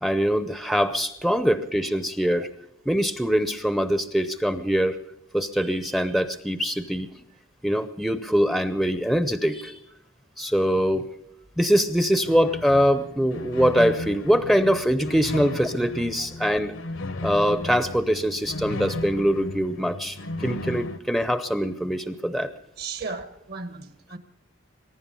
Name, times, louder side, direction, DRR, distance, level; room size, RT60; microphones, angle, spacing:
voice 1, 0.0-2.5 2.9-5.0 5.3-7.1 7.6-9.8 10.4-11.1 11.6-16.7 17.2-20.2 20.4-22.5, equal, ahead, 0.6 m, -23 dB
sound 1, 12.2-21.0, left 2 dB, 70° left, 0.9 m, -35 dB
voice 2, 22.8-24.2, right 4 dB, 50° right, 1.3 m, -36 dB
22.5 x 11.0 x 5.5 m
head